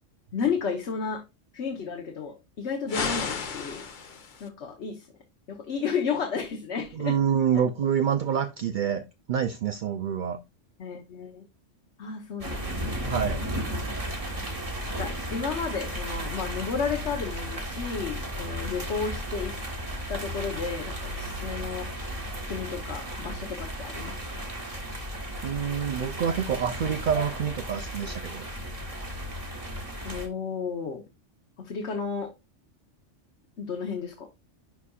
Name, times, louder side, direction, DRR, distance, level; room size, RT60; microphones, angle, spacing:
voice 1, 0.3-1.2 1.5-3.9 4.4-5.1 5.5-7.2 7.5-7.6 10.8-11.4 12.0-13.2 14.9-19.6 20.1-21.9 22.5-24.4 30.0-31.0 31.6-32.3 33.6-34.3, left 5 dB, 60° left, 1.3 m, -32 dB
sound 1, 2.9-4.5, left 5 dB, 45° left, 0.9 m, -33 dB
voice 2, 6.9-10.4 13.1-13.4 25.4-28.4, right 8 dB, 60° right, 0.5 m, -27 dB
sound 2, 12.4-30.3, equal, 30° right, 1.4 m, -34 dB
10.5 x 4.2 x 2.3 m
omnidirectional pair, 1.3 m